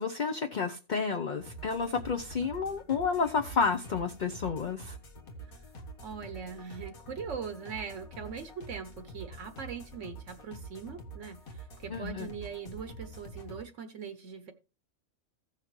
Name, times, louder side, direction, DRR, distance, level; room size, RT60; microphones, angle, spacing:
voice 1, 0.0-5.0 11.9-12.3, left 5 dB, 45° left, 4 dB, 0.6 m, -30 dB
sound 1, 1.4-13.6, right 2 dB, 90° left, 2.0 m, -47 dB
voice 2, 6.0-14.5, right 6 dB, 65° right, 9 dB, 1.1 m, -41 dB
15.5 x 5.8 x 3.1 m, 0.33 s
omnidirectional pair, 1.4 m